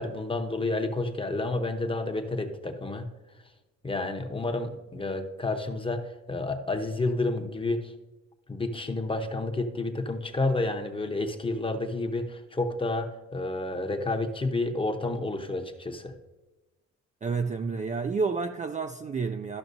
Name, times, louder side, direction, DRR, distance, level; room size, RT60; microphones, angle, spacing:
voice 1, 0.0-3.1 3.8-7.9 8.5-16.1, left 2 dB, 15° left, 6 dB, 0.8 m, -30 dB
voice 2, 17.2-19.6, right 4 dB, 25° right, 6 dB, 0.3 m, -30 dB
12.5 x 5.8 x 2.6 m, 1.1 s
cardioid pair, 90°, 30 cm